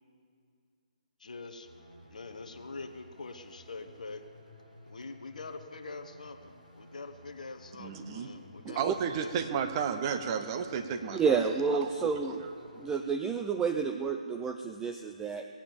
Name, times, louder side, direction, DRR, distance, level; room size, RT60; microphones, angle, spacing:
voice 1, 1.2-1.7 2.1-4.2 4.9-9.3, left 3 dB, 65° left, 5 dB, 1.0 m, -44 dB
sound 1, 1.6-13.0, equal, 90° right, 2.7 m, -55 dB
voice 2, 7.8-8.3 8.8-11.4 11.8-12.5, right 7 dB, 30° right, 7 dB, 1.0 m, -33 dB
voice 3, 11.1-12.4 12.7-15.5, right 5 dB, 10° right, 5 dB, 0.4 m, -30 dB
19.5 x 8.9 x 7.2 m, 2.3 s
figure-of-eight pair, 140°, 4 cm